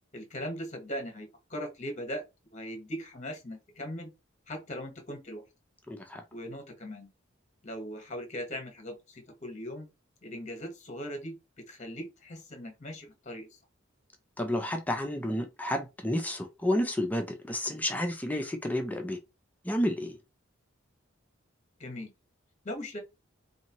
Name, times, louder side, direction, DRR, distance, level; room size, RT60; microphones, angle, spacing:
voice 1, 0.1-2.2 2.5-4.1 4.5-5.4 6.3-7.1 7.6-9.9 10.2-11.3 11.7-13.5 21.8-22.1 22.6-23.0, equal, 35° left, 1.1 m, -39 dB
voice 2, 5.9-6.2 14.4-19.2 19.6-20.2, left 1 dB, 10° left, 0.5 m, -31 dB
4.2 x 2.7 x 2.9 m
head